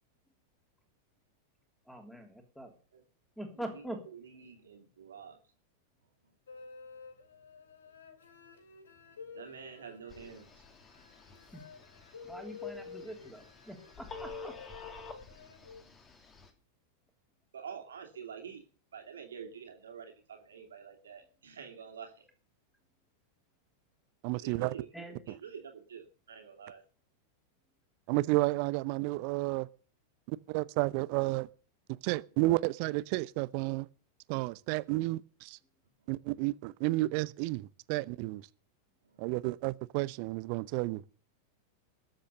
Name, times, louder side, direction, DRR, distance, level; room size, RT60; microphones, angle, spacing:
voice 1, 1.9-2.7 3.4-4.0 11.5-11.6 12.2-14.5 24.9-25.2, right 1 dB, 5° left, 3.1 m, -43 dB
voice 2, 3.5-5.4 6.2-6.3 9.1-10.7 15.2-16.0 17.5-18.6 18.9-22.3 24.3-24.9 25.3-26.8 36.0-36.1 39.0-39.5, right 7 dB, 65° right, 2.7 m, -48 dB
sound 1, 6.5-15.8, left 6 dB, 70° left, 2.7 m, -50 dB
Telephone, 10.1-16.5, left 4 dB, 20° left, 2.7 m, -50 dB
voice 3, 24.2-24.7 25.3-25.4 28.1-29.7 30.3-31.5 32.0-33.9 34.3-35.6 36.1-38.5 39.2-41.0, right 20 dB, 45° right, 0.7 m, -31 dB
20.0 x 7.7 x 6.7 m
figure-of-eight pair, 90°, 0 cm